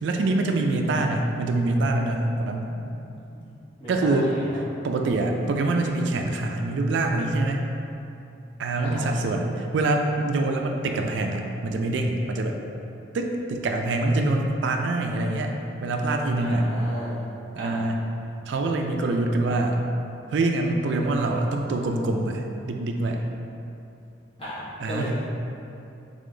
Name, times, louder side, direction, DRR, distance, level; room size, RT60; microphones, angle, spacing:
voice 1, 0.0-2.7 3.9-4.3 4.8-7.6 8.6-12.6 13.1-15.5 15.8-16.7 17.6-18.1 18.5-19.8 20.3-23.2 24.8-25.1, right 2 dB, 70° right, 3 dB, 0.3 m, -25 dB
voice 2, 3.8-4.5 8.8-9.1 16.4-17.2 17.6-17.8 24.4-25.1, equal, 30° left, -10 dB, 1.2 m, -36 dB
3.8 x 3.4 x 3.7 m, 2.7 s
head